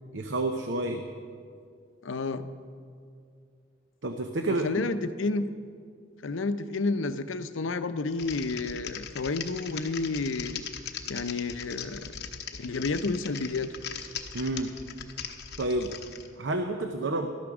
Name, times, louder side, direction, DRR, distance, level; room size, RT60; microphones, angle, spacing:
voice 1, 0.1-1.0 4.0-4.7 14.3-14.7 15.6-16.0 16.4-17.3, right 2 dB, 65° right, 6 dB, 0.7 m, -29 dB
voice 2, 2.0-2.5 4.5-5.5 6.2-10.6 11.1-12.3 12.6-13.7, left 3 dB, 80° left, 11 dB, 0.6 m, -30 dB
Typing, 8.1-16.3, left 7 dB, 55° left, 0.9 m, -40 dB
13.0 x 12.0 x 6.1 m, 2.2 s
head